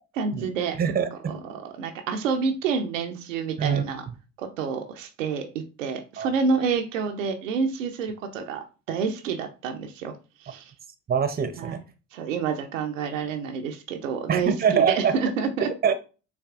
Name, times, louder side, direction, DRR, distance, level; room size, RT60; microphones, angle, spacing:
voice 1, 0.1-0.8 1.3-4.0 4.4-10.1 10.4-10.7 11.6-11.8 12.1-15.7, right 5 dB, 85° right, 4 dB, 0.7 m, -28 dB
voice 2, 0.8-1.4 3.6-3.9 6.2-6.3 11.1-11.8 14.3-15.1 15.8-15.9, right 7 dB, 25° right, 10 dB, 0.8 m, -24 dB
6.7 x 2.6 x 2.4 m, 0.32 s
hypercardioid pair, 50°, 37 cm